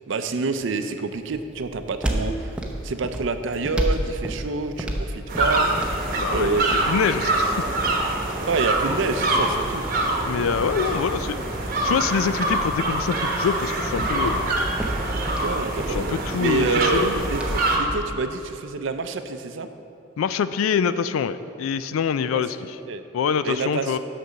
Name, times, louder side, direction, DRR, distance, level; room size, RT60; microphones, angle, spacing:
voice 1, 0.1-2.6 2.8-6.0 6.3-6.9 8.5-9.8 15.4-19.7 22.3-23.0 23.4-24.0, right 3 dB, 65° right, 9 dB, 0.5 m, -27 dB
sound 1, 1.1-18.1, right 1 dB, 5° right, 0.6 m, -34 dB
sound 2, 5.3-17.8, right 2 dB, 45° right, 1.0 m, -25 dB
voice 2, 6.1-6.6 6.9-7.6 10.2-11.4 11.8-14.6 15.9-17.3 20.2-22.8 23.1-24.0, left 6 dB, 85° left, 13 dB, 0.3 m, -25 dB
6.6 x 6.0 x 6.3 m, 2.7 s
head